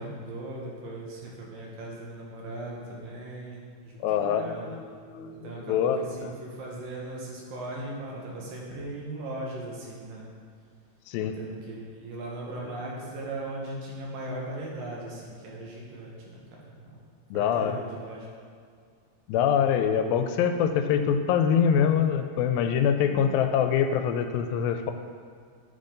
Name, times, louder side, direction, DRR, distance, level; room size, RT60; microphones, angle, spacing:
voice 1, 0.0-4.8 5.3-10.2 11.2-17.0 17.3-18.3 23.0-23.3, right 2 dB, 75° right, -3 dB, 3.0 m, -38 dB
voice 2, 4.0-6.3 11.1-11.4 17.3-17.8 19.3-24.9, left 8 dB, 85° left, 7 dB, 2.3 m, -25 dB
9.6 x 5.5 x 3.8 m, 2.1 s
omnidirectional pair, 4.1 m